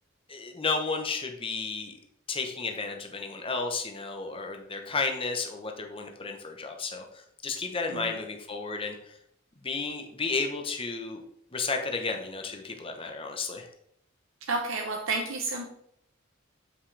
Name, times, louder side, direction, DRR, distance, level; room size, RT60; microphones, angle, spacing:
voice 1, 0.3-1.9 2.3-9.2 9.6-11.2 11.5-13.7, left 4 dB, 25° left, 4 dB, 0.9 m, -32 dB
voice 2, 14.5-15.6, right 3 dB, 70° right, 1 dB, 0.8 m, -31 dB
7.3 x 5.9 x 3.3 m, 0.70 s
head